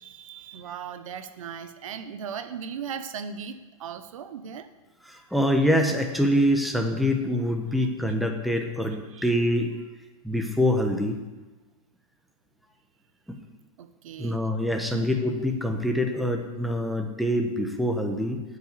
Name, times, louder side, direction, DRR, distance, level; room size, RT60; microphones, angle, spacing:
voice 1, 0.0-4.7 9.1-9.3 13.8-14.4 14.9-15.1, right 7 dB, 70° right, 10 dB, 1.0 m, -38 dB
voice 2, 5.1-9.8 10.2-11.2 13.3-13.4 14.2-18.4, equal, ahead, 3 dB, 1.3 m, -25 dB
9.2 x 8.1 x 8.3 m, 1.2 s
hypercardioid pair, 120°, 18 cm